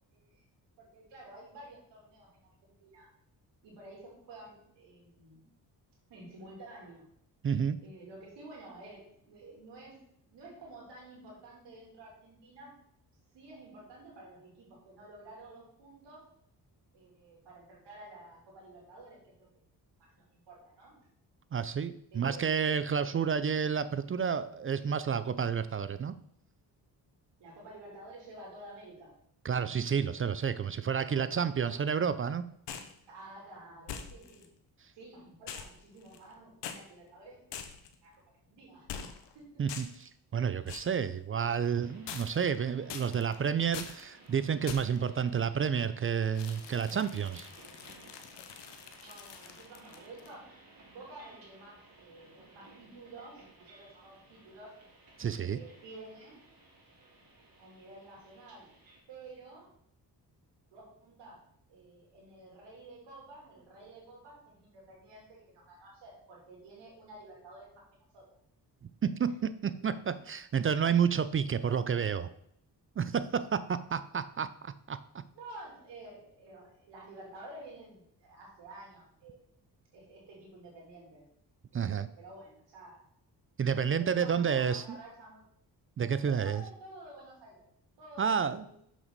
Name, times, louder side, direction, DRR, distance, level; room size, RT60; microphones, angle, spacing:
voice 1, 0.1-0.4 0.8-3.1 3.6-5.4 6.1-7.0 7.8-12.7 13.3-16.3 16.9-19.5 20.0-20.9 22.1-22.5 23.0-23.2 27.4-29.1 31.0-31.8 33.1-34.5 34.9-37.6 38.0-38.1 38.5-38.9 39.3-39.6 49.0-50.5 50.9-54.8 55.4-56.4 57.0-57.2 57.6-58.7 59.1-59.7 60.7-61.4 61.7-67.8 68.1-68.2 69.2-69.3 75.3-79.4 79.9-81.2 81.7-83.0 83.7-85.4 86.2-87.6 88.0-88.8, right 2 dB, 85° right, -2 dB, 3.0 m, -51 dB
voice 2, 7.4-7.8 21.5-26.1 29.4-32.4 39.6-39.9 40.3-47.5 55.2-55.6 69.0-72.3 73.0-75.0 81.7-82.1 83.6-84.8 86.0-86.6 88.2-88.6, right 7 dB, 30° right, 14 dB, 0.4 m, -30 dB
sound 1, 32.7-33.0 33.9-34.5 35.5-36.3 36.6-36.8 37.5-38.0 38.9-39.3 39.7-40.1 40.7-41.0 42.1-42.6 42.9-43.4 43.7-44.0 44.7-45.0 46.4-50.3, left 7 dB, 85° left, 0.9 m, -44 dB
sound 2, 41.8-59.0, right 2 dB, 55° right, 2.5 m, -58 dB
6.9 x 6.1 x 4.0 m, 0.69 s
cardioid pair, 75°, 41 cm